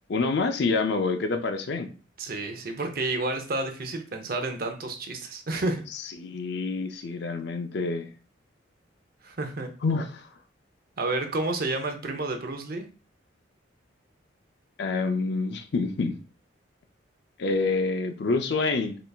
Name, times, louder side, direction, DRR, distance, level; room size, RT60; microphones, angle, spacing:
voice 1, 0.1-1.9 5.9-8.1 9.8-10.3 14.8-16.2 17.4-19.0, left 3 dB, 55° left, 7 dB, 0.4 m, -27 dB
voice 2, 2.2-5.8 9.2-9.7 11.0-12.9, right 2 dB, 45° right, 5 dB, 0.6 m, -30 dB
3.9 x 3.3 x 2.3 m, 0.36 s
head